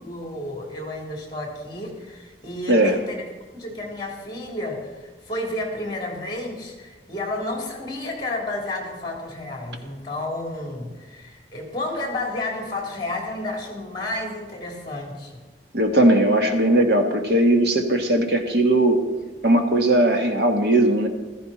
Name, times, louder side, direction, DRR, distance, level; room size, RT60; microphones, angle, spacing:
voice 1, 0.0-15.4, left 2 dB, 25° left, 0 dB, 3.4 m, -31 dB
voice 2, 15.7-19.0 19.4-21.1, right 1 dB, 65° right, 3 dB, 1.7 m, -18 dB
15.0 x 14.0 x 4.3 m, 1.3 s
head